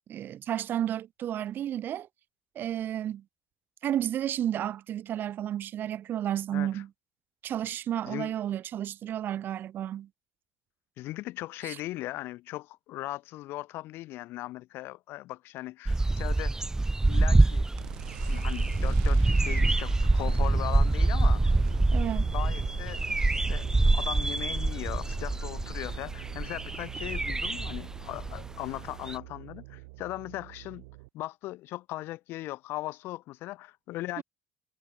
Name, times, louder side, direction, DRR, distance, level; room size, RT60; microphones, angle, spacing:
voice 1, 0.1-2.1 2.6-3.2 3.8-6.9 7.4-10.1 11.6-11.8 21.9-22.3 34.2-34.3, right 11 dB, 60° right, 0.7 m, -32 dB
voice 2, 6.5-6.8 8.0-8.3 11.0-16.7 17.1-17.7 18.3-21.5 22.3-23.0 23.5-30.9 31.1-34.2, left 17 dB, 70° left, 2.0 m, -38 dB
sound 1, 15.9-28.8 29.1-29.2, right 2 dB, 15° right, 1.1 m, -25 dB
sound 2, 17.8-31.1, right 26 dB, 85° right, 3.6 m, -44 dB
hypercardioid pair, 65°, 4 cm